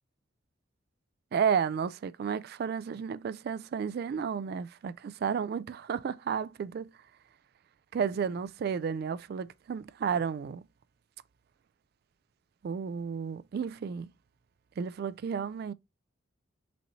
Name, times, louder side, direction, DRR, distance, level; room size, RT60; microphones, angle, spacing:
voice 1, 1.3-6.9 7.9-10.6 12.6-14.1 14.8-15.7, right 7 dB, 55° right, 0.3 m, -32 dB
6.1 x 3.0 x 2.7 m
head